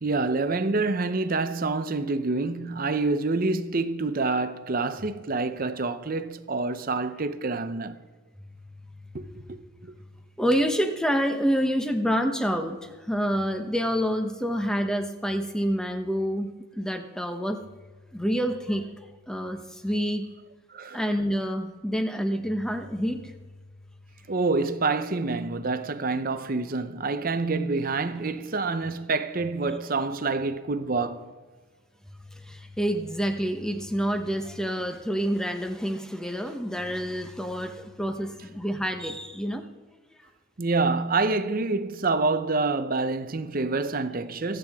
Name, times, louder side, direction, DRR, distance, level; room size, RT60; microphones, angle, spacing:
voice 1, 0.0-8.0 9.1-9.9 20.7-21.0 24.3-31.3 40.6-44.6, right 3 dB, 45° right, 0.7 m, -27 dB
voice 2, 10.4-17.6 18.1-18.9 19.3-20.3 20.9-23.3 32.3-39.6, equal, 5° left, 1.0 m, -27 dB
25.5 x 9.2 x 3.6 m
head